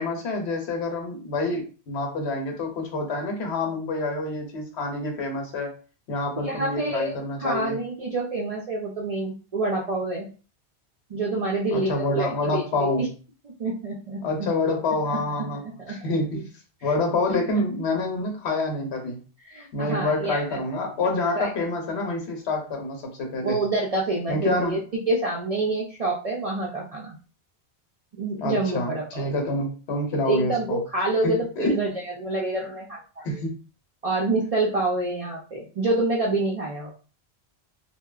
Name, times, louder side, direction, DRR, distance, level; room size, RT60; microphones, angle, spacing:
voice 1, 0.0-5.7 6.1-7.8 11.7-13.1 14.2-16.5 16.8-19.2 19.7-23.6 24.3-24.8 28.4-30.8 31.2-31.8 33.2-33.6, left 2 dB, 75° left, 3 dB, 1.0 m, -27 dB
voice 2, 6.4-10.3 11.1-13.1 13.6-14.5 15.1-15.2 15.8-16.0 16.8-16.9 17.3-17.4 19.5-20.6 21.4-21.5 23.4-27.2 28.1-29.3 30.2-31.9 32.2-33.2 34.0-36.9, right 2 dB, 55° right, -3 dB, 0.4 m, -27 dB
2.7 x 2.2 x 2.3 m, 0.36 s
omnidirectional pair, 1.1 m